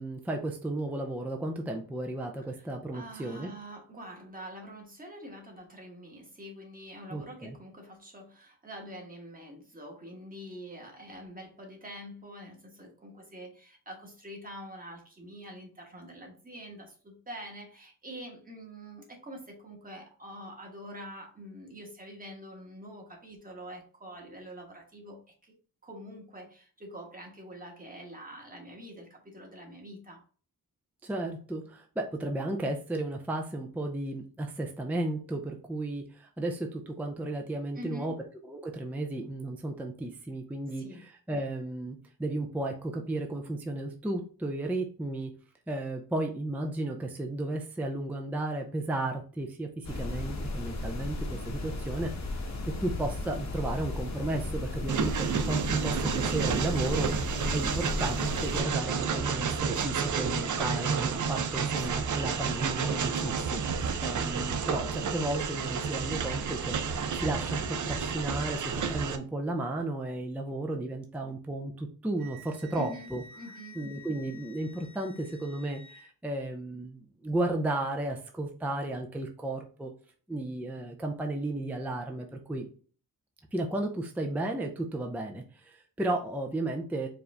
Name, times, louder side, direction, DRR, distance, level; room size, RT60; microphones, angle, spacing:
voice 1, 0.0-3.5 7.1-7.6 31.0-38.1 38.5-45.3 45.7-52.1 52.4-57.1 57.5-73.2 73.7-79.9 80.3-82.7 83.5-87.1, right 2 dB, 5° right, 2 dB, 0.4 m, -34 dB
voice 2, 2.9-25.5 25.8-30.2 37.7-38.1 40.7-41.0 61.9-62.1 72.7-73.8, right 1 dB, 20° right, 0 dB, 1.3 m, -45 dB
sound 1, 49.8-58.6, left 2 dB, 45° left, 0.9 m, -35 dB
Train, 54.9-69.2, right 6 dB, 55° right, 0.5 m, -30 dB
Wind instrument woodwind instrument, 72.2-76.1, left 1 dB, 90° left, 1.2 m, -52 dB
4.8 x 2.5 x 3.3 m, 0.40 s
wide cardioid pair, 130°, 38 cm